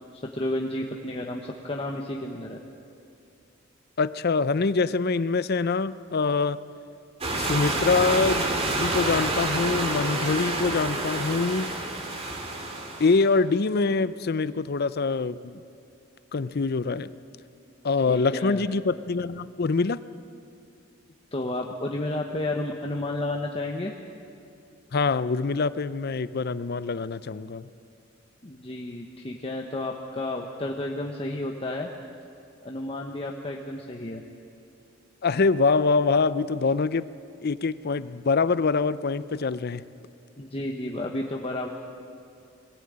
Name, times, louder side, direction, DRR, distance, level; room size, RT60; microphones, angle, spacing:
voice 1, 0.1-2.6 18.1-18.6 21.3-23.9 28.4-31.9 32.6-34.2 40.4-41.7, left 1 dB, 30° left, 0 dB, 1.1 m, -31 dB
voice 2, 4.0-6.6 7.3-8.4 8.7-11.8 13.0-15.6 16.3-17.1 17.8-20.0 24.9-27.7 35.2-37.1 37.4-39.8, left 4 dB, 50° left, 16 dB, 0.5 m, -24 dB
sound 1, 7.2-13.3, right 2 dB, 30° right, 2.1 m, -28 dB
21.5 x 15.5 x 8.8 m, 2.5 s
head